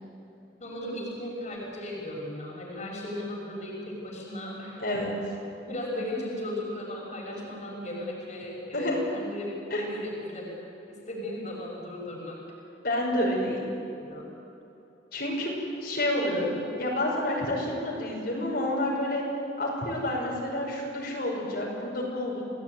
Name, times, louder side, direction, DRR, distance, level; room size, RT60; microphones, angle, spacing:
voice 1, 0.6-4.8 5.6-10.5 10.9-12.4 14.1-14.3, left 1 dB, 40° left, -2 dB, 6.1 m, -36 dB
voice 2, 4.8-5.1 8.7-9.0 9.7-9.8 12.8-13.6 15.1-19.2 19.6-22.4, left 1 dB, 55° left, -3 dB, 5.9 m, -29 dB
29.5 x 19.0 x 9.5 m, 2.9 s
head